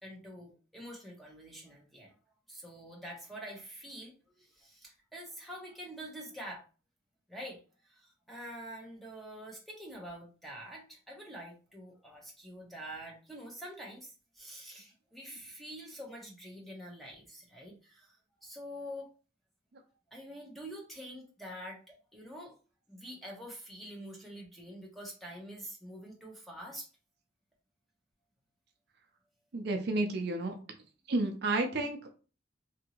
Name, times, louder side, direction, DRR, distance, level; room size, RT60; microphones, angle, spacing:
voice 1, 0.0-2.1 2.5-6.6 7.3-7.6 7.8-19.1 20.1-22.5 22.9-26.9, equal, ahead, -2 dB, 0.8 m, -46 dB
voice 2, 29.5-30.6 31.1-32.0, right 2 dB, 55° right, 5 dB, 0.5 m, -31 dB
2.8 x 2.6 x 2.8 m, 0.35 s
head